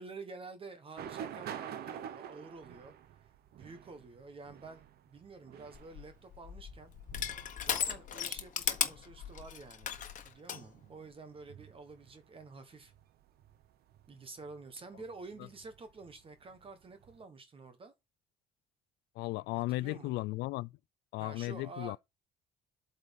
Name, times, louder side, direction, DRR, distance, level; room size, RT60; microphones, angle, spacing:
voice 1, 0.0-2.9 3.2-6.9 7.6-12.9 14.1-17.9 19.7-20.2 21.2-22.0, right 3 dB, 30° right, 1.4 m, -49 dB
sound 1, 1.0-17.2, right 9 dB, 65° right, 0.9 m, -50 dB
Crushing, 5.7-10.6, left 9 dB, 50° left, 1.3 m, -36 dB
voice 2, 19.2-20.7 21.1-22.0, left 19 dB, 85° left, 0.4 m, -35 dB
7.8 x 4.2 x 5.3 m
cardioid pair, 110°, 17 cm